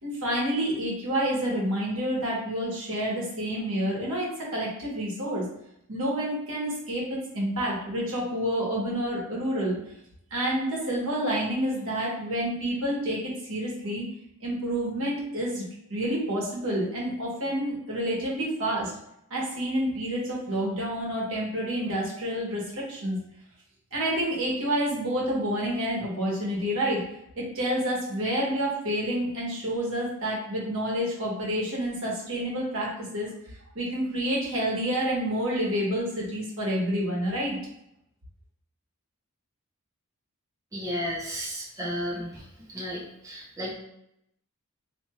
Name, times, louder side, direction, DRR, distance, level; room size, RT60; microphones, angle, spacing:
voice 1, 0.0-5.4 5.9-9.8 10.3-14.0 14.4-15.6 15.9-18.9 19.3-23.2 23.9-27.0 27.4-33.3 33.7-37.6, equal, 65° right, -4 dB, 1.4 m, -28 dB
voice 2, 40.7-42.4 42.7-43.7, equal, 15° right, -7 dB, 0.9 m, -33 dB
3.0 x 2.6 x 4.2 m, 0.78 s
head